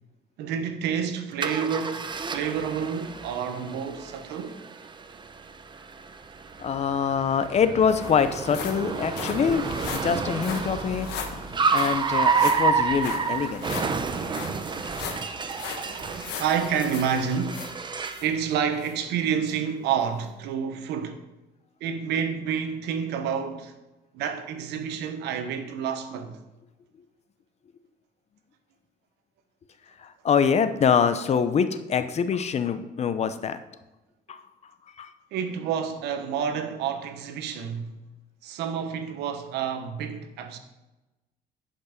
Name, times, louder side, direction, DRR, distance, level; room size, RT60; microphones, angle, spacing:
voice 1, 0.4-4.6 13.2-15.0 15.8-17.7 18.2-21.2 21.8-23.7 24.1-26.4 35.3-38.0 38.4-40.6, right 7 dB, 80° right, 1.1 m, -29 dB
Car, 1.4-18.3, right 5 dB, 25° right, 0.7 m, -30 dB
voice 2, 6.6-11.1 11.7-13.7 30.0-33.6 34.3-34.4 35.0-35.1, left 7 dB, 40° left, 0.7 m, -24 dB
sound 1, 7.1-7.2 7.4-18.3 18.8-18.9 19.5-19.6, left 7 dB, 85° left, 1.2 m, -39 dB
11.0 x 5.3 x 5.1 m
cardioid pair, 110°, 17 cm